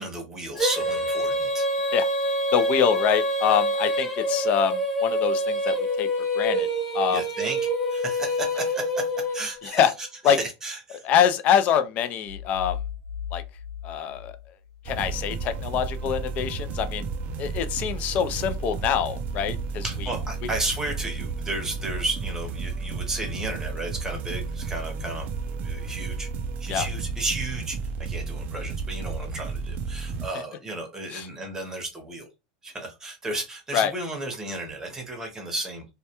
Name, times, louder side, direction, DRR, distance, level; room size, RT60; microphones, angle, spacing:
voice 1, 0.0-1.7 7.1-7.6 7.9-11.1 19.8-26.3 26.6-32.3 32.6-35.9, right 2 dB, 15° right, 0.8 m, -33 dB
Female singing, 0.6-9.7, equal, 15° left, 0.9 m, -26 dB
voice 2, 2.5-6.1 6.3-6.7 6.9-7.2 9.6-9.9 10.2-10.4 11.0-12.8 13.3-13.4 13.8-14.3 14.9-17.1 17.4-20.1 20.4-20.5 26.7-26.9 31.1-31.3 33.7-33.9, left 8 dB, 40° left, 0.4 m, -25 dB
sound 1, 12.3-14.9, left 8 dB, 85° right, 0.7 m, -37 dB
sound 2, 14.8-30.3, right 4 dB, 40° right, 0.4 m, -32 dB
2.2 x 2.2 x 2.8 m
supercardioid pair, 125°, 4 cm